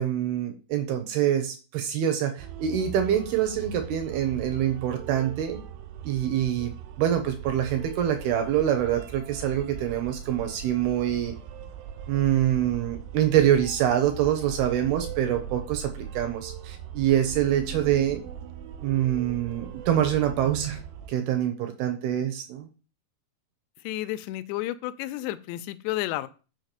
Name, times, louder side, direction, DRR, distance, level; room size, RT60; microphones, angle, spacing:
voice 1, 0.0-5.6 6.0-6.7 7.0-11.3 12.1-18.2 18.8-20.8 21.1-22.7, right 10 dB, 75° right, 6 dB, 2.6 m, -25 dB
sound 1, 2.4-21.1, right 9 dB, 90° right, 2.9 m, -40 dB
voice 2, 23.8-26.3, left 15 dB, 85° left, 12 dB, 2.8 m, -31 dB
6.5 x 4.8 x 6.7 m, 0.35 s
omnidirectional pair, 4.9 m